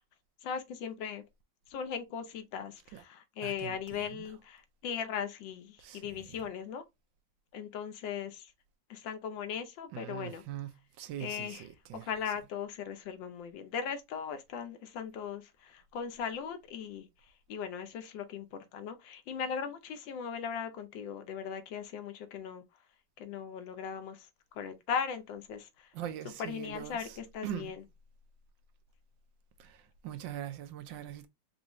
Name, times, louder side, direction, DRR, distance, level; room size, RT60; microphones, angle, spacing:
voice 1, 0.4-1.2 1.7-6.8 7.5-8.5 8.9-10.4 11.2-11.6 11.9-17.1 17.5-22.6 23.2-25.9 26.2-27.8, left 7 dB, 85° left, 1.5 m, -38 dB
voice 2, 3.4-4.2 5.8-6.4 9.9-10.7 11.0-12.1 25.9-27.2 27.4-27.7 29.6-31.3, right 11 dB, 90° right, 1.4 m, -42 dB
4.7 x 2.6 x 3.0 m
omnidirectional pair, 2.0 m